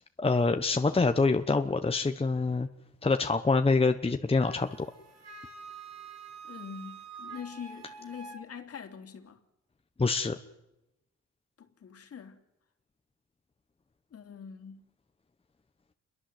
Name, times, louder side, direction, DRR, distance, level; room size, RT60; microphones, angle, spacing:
voice 1, 0.2-2.7 3.0-4.7 10.0-10.4, left 3 dB, 20° left, 1.2 m, -25 dB
Wind instrument woodwind instrument, 4.3-8.4, right 5 dB, 60° right, 4.2 m, -47 dB
voice 2, 6.4-9.4 11.6-12.4 14.1-14.8, left 7 dB, 50° left, 3.1 m, -44 dB
27.5 x 22.5 x 8.0 m
cardioid pair, 90°, 30 cm